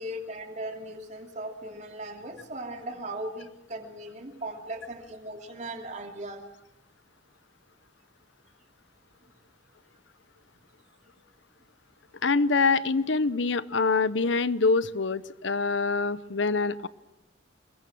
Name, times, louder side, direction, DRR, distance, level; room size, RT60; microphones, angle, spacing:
voice 1, 0.0-6.4, right 1 dB, 40° right, 3 dB, 3.1 m, -38 dB
voice 2, 12.2-16.9, left 4 dB, 70° left, 17 dB, 0.9 m, -25 dB
27.5 x 22.5 x 6.2 m, 0.92 s
head